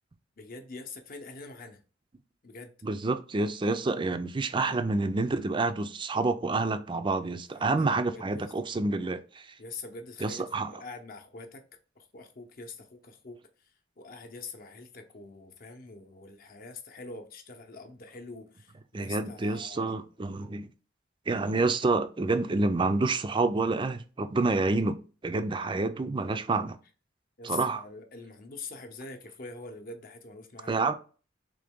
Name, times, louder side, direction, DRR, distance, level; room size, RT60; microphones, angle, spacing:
voice 1, 0.4-1.8 2.4-2.7 7.5-8.5 9.6-11.6 12.0-20.0 27.4-30.8, left 3 dB, 50° left, 0.7 m, -44 dB
voice 2, 2.8-9.4 10.2-10.7 18.9-20.7 21.3-25.0 25.2-26.8 27.4-27.8 30.7-30.9, right 3 dB, 25° right, 0.4 m, -28 dB
3.8 x 3.0 x 3.5 m
head